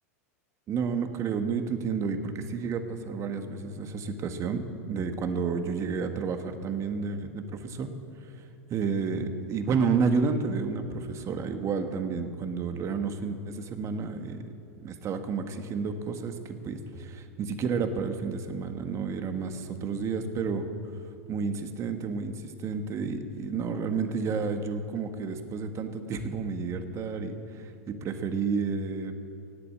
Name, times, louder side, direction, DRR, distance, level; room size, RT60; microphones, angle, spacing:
voice 1, 0.7-7.9 8.2-8.4 8.7-14.5 14.8-20.6 21.3-29.1, right 5 dB, 35° right, 7 dB, 1.7 m, -31 dB
17.5 x 8.5 x 8.6 m, 2.4 s
hypercardioid pair, 100°, 8 cm